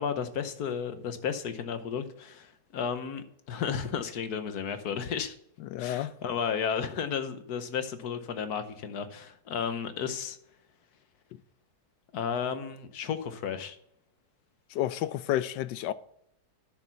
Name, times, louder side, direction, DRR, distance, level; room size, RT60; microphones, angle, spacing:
voice 1, 0.0-5.4 5.8-10.4 12.1-13.8, left 7 dB, 65° left, 1.4 m, -33 dB
voice 2, 5.6-6.1 14.7-15.9, left 12 dB, 80° left, 1.2 m, -30 dB
9.9 x 6.9 x 5.7 m
omnidirectional pair, 1.9 m